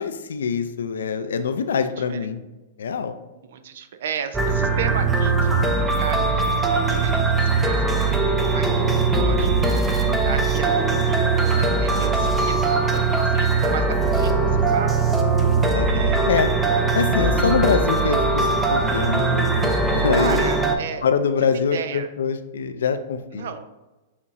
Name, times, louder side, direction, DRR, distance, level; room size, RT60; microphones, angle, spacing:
voice 1, 0.0-2.4 2.8-3.2 10.0-10.4 15.7-16.5 17.0-20.4 21.0-23.5, left 6 dB, 90° left, 9 dB, 0.3 m, -24 dB
voice 2, 2.0-2.3 3.4-9.9 10.2-12.6 12.9-14.9 15.9-16.3 20.1-21.1 21.5-22.1 23.3-23.6, right 7 dB, 70° right, 9 dB, 0.4 m, -34 dB
sound 1, 4.3-20.8, right 3 dB, 10° right, 0.4 m, -20 dB
5.5 x 2.4 x 2.8 m, 1.1 s
hypercardioid pair, 135°, 0 cm